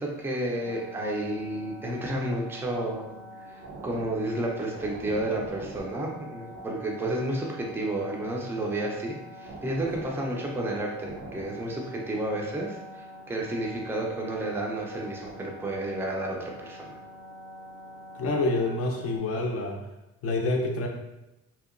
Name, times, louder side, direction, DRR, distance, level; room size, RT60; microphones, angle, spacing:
voice 1, 0.0-3.1 3.4-17.0, right 1 dB, 10° right, -1 dB, 0.4 m, -31 dB
sound 1, 0.6-19.2, equal, 55° right, 0.6 m, -44 dB
voice 2, 18.1-19.8 20.2-20.9, left 2 dB, 50° left, 2 dB, 0.5 m, -27 dB
2.8 x 2.1 x 2.4 m, 0.93 s
cardioid pair, 90°, 30 cm